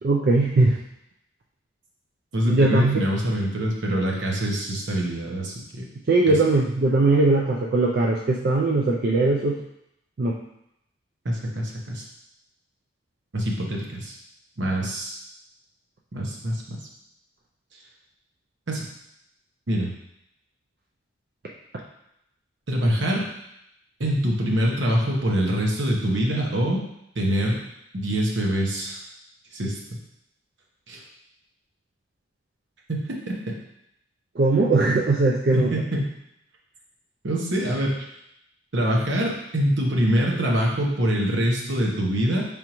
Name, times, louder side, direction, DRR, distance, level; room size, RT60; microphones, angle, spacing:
voice 1, 0.0-0.8 2.5-3.0 6.1-9.6 10.2-10.4 34.4-35.7, right 2 dB, 50° right, -2 dB, 0.4 m, -20 dB
voice 2, 2.3-5.9 6.3-6.4 11.2-12.0 13.3-14.1 14.6-15.2 16.1-16.8 18.7-18.8 19.7-19.9 22.7-23.3 24.0-26.8 27.2-27.6 27.9-29.0 29.5-29.8 30.9-31.0 32.9-33.0 35.5-36.1 37.2-38.0 38.7-42.4, equal, 70° right, -1 dB, 0.9 m, -24 dB
5.0 x 3.5 x 3.0 m, 0.80 s
head